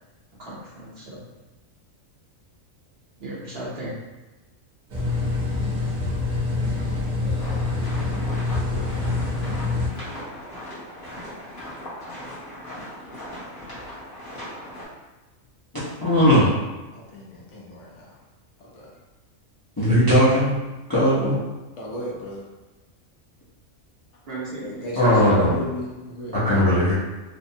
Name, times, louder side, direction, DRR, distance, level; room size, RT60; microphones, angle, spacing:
voice 1, 0.4-1.3 3.2-4.0 8.0-8.3 11.6-11.7 24.3-25.4, right 1 dB, 55° right, -6 dB, 0.9 m, -37 dB
sound 1, 4.9-9.9, left 3 dB, 80° right, 1.1 m, -25 dB
voice 2, 7.2-7.9 8.7-9.9 16.9-18.2 18.6-18.9 21.8-22.4 24.6-26.4, equal, 65° left, -3 dB, 0.9 m, -36 dB
sound 2, 7.4-14.9, left 1 dB, 45° left, 1.1 m, -38 dB
voice 3, 16.0-16.5 19.8-20.6 20.9-21.4 25.0-25.5 26.3-26.9, equal, 25° left, -10 dB, 0.5 m, -18 dB
3.3 x 2.1 x 2.7 m, 1.1 s
omnidirectional pair, 1.4 m